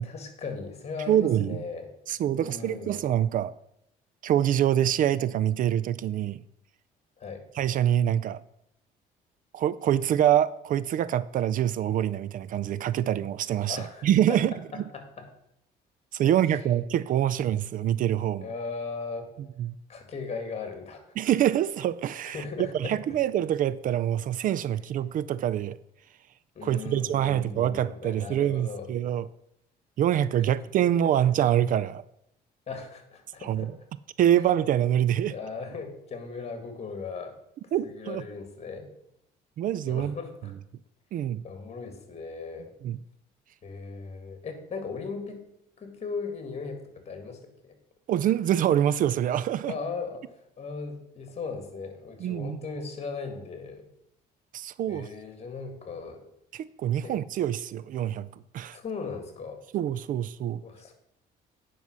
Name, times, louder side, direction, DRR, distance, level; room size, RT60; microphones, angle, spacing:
voice 1, 0.0-1.9 2.4-3.0 7.2-7.5 13.7-14.4 14.7-15.3 16.2-16.3 18.4-19.3 19.9-21.0 22.3-23.0 26.6-28.9 32.7-33.7 35.3-37.4 37.8-38.9 39.9-40.5 41.4-42.7 43.6-45.4 45.8-47.8 49.7-50.3 50.6-53.9 54.9-56.2 57.0-57.2 58.7-59.6 60.6-60.9, left 4 dB, 40° left, 2.1 m, -38 dB
voice 2, 1.1-1.7 2.1-3.5 4.2-6.4 7.5-8.4 9.5-14.8 16.1-18.5 19.6-19.8 21.2-25.8 26.6-29.3 30.0-32.0 33.4-33.7 34.2-35.4 37.7-38.3 39.6-40.2 41.1-41.4 42.8-43.0 48.1-49.7 52.2-52.6 54.5-55.1 56.5-58.3 58.5-58.8 59.7-60.6, right 11 dB, 55° right, 0.4 m, -25 dB
9.6 x 5.5 x 6.1 m
cardioid pair, 110°, 17 cm